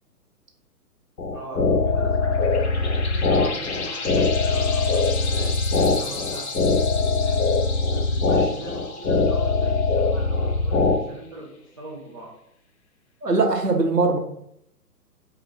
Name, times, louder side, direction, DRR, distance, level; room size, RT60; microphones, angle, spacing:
sound 1, 1.2-11.0, left 3 dB, 80° left, 0.7 m, -22 dB
voice 1, 1.3-6.5 6.9-7.6 7.9-12.3, right 2 dB, 25° right, -8 dB, 0.5 m, -40 dB
sound 2, 1.8-10.9, left 4 dB, 45° left, 0.6 m, -35 dB
voice 2, 13.2-14.2, right 3 dB, 90° right, 2 dB, 0.9 m, -20 dB
3.8 x 2.2 x 3.9 m, 0.72 s
figure-of-eight pair, 125°, 48 cm